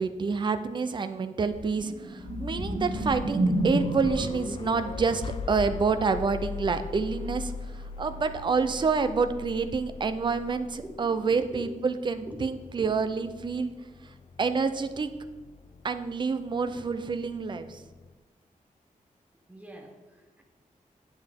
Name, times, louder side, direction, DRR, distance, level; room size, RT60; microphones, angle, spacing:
voice 1, 0.0-7.5 8.0-13.7 14.4-15.1 15.8-17.8, right 5 dB, 35° right, 10 dB, 0.4 m, -28 dB
sound 1, 1.5-4.4 7.2-7.4, right 1 dB, 75° right, 1.5 m, -29 dB
sound 2, 2.2-18.1, left 5 dB, 40° left, 0.3 m, -41 dB
voice 2, 10.8-11.6 12.3-12.4 12.8-13.2 19.5-20.4, equal, 10° right, 2 dB, 0.9 m, -44 dB
8.9 x 7.5 x 3.5 m, 1.2 s
wide cardioid pair, 170°, 14 cm